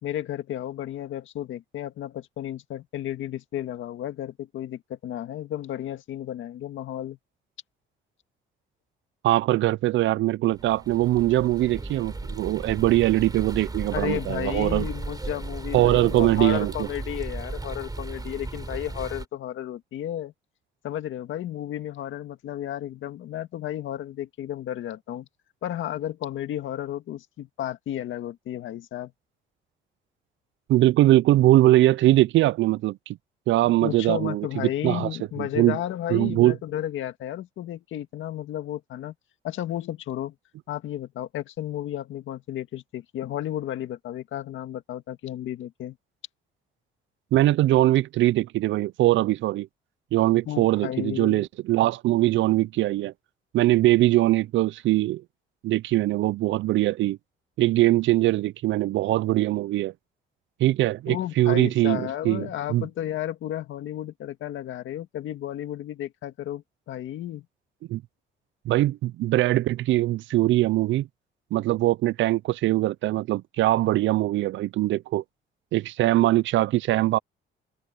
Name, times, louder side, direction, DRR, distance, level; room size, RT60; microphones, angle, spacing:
voice 1, 0.0-7.2 13.9-20.3 20.8-25.3 25.6-29.1 33.6-39.1 39.4-40.3 40.7-46.0 50.5-51.4 61.1-67.4, left 12 dB, 80° left, 1.8 m, -33 dB
voice 2, 9.2-14.9 15.7-16.9 30.7-33.2 33.5-35.1 35.4-35.8 36.1-36.6 47.3-49.7 50.1-53.1 53.5-55.2 55.6-57.2 57.6-59.9 60.6-62.9 67.9-68.0 68.7-71.1 71.5-75.2 75.7-77.2, right 16 dB, 70° right, 0.4 m, -22 dB
sound 1, 10.5-19.2, right 2 dB, 20° right, 4.1 m, -35 dB
cardioid pair, 90°, 20 cm